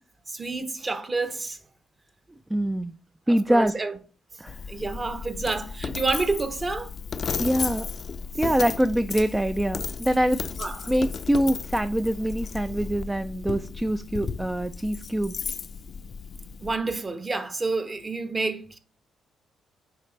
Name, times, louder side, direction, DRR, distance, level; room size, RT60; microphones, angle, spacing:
voice 1, 0.3-1.6 3.3-3.9 4.7-6.9 10.6-10.9 16.6-18.8, right 3 dB, 30° right, 1.0 m, -29 dB
voice 2, 2.5-2.9 3.3-3.7 4.4-4.6 7.4-7.9 8.3-10.4 10.9-15.3, right 1 dB, 10° right, 0.4 m, -24 dB
Coin (dropping), 4.5-16.8, left 5 dB, 45° left, 0.5 m, -34 dB
7.6 x 5.0 x 3.2 m
cardioid pair, 90°, 0 cm